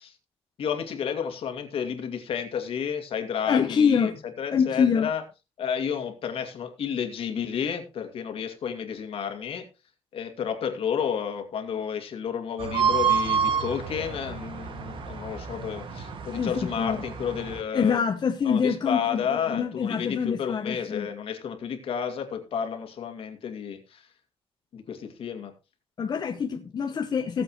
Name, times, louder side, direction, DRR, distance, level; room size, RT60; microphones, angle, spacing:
voice 1, 0.6-4.1 4.4-5.2 5.6-9.7 10.1-18.0 18.4-24.1 24.7-25.5, left 7 dB, 65° left, 2.3 m, -31 dB
voice 2, 3.5-4.2 4.5-5.1 16.4-17.0 17.7-21.1 26.0-27.4, left 6 dB, 40° left, 1.0 m, -25 dB
sound 1, 12.6-17.6, right 7 dB, 55° right, 1.9 m, -29 dB
18.5 x 7.7 x 3.0 m
cardioid pair, 140°, 10 cm